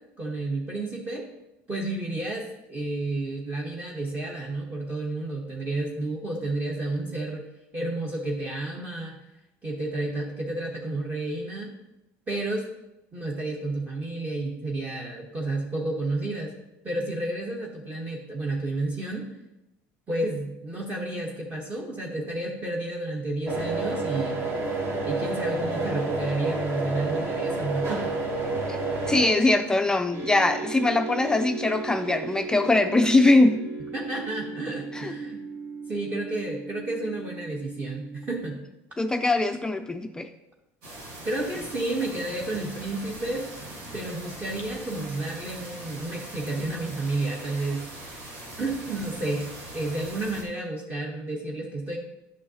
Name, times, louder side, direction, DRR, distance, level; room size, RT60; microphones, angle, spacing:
voice 1, 0.2-1.2 1.7-7.4 7.7-9.2 9.6-11.7 12.3-12.6 13.1-16.5 16.8-19.3 20.1-24.4 25.0-28.1 33.9-35.4 35.9-38.6 41.2-43.4 43.9-47.9 48.6-49.5 49.7-52.0, right 2 dB, 25° right, -1 dB, 1.0 m, -31 dB
sound 1, 23.5-29.3, right 3 dB, 40° right, 1.4 m, -29 dB
voice 2, 29.1-33.6 34.9-35.1 39.0-40.3, left 2 dB, 10° left, 7 dB, 0.3 m, -22 dB
sound 2, 30.1-38.4, right 4 dB, 60° right, 1.8 m, -37 dB
sound 3, 40.8-50.4, right 1 dB, 85° right, 1.9 m, -41 dB
8.5 x 6.3 x 2.8 m, 0.91 s
supercardioid pair, 110°, 6 cm